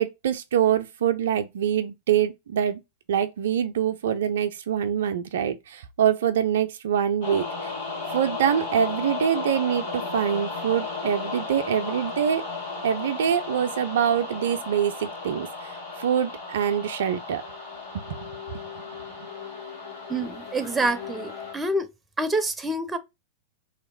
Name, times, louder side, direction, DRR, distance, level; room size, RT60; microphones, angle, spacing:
voice 1, 0.0-2.8 3.1-7.7 8.1-12.5 12.8-17.4 17.9-18.7 19.2-19.3, right 9 dB, 70° right, 0.4 m, -25 dB
sound 1, 7.2-21.5, left 4 dB, 75° left, 2.0 m, -35 dB
voice 2, 20.1-21.9 22.2-23.0, right 2 dB, 15° right, 0.6 m, -27 dB
3.0 x 2.8 x 2.2 m
figure-of-eight pair, 95°, 0 cm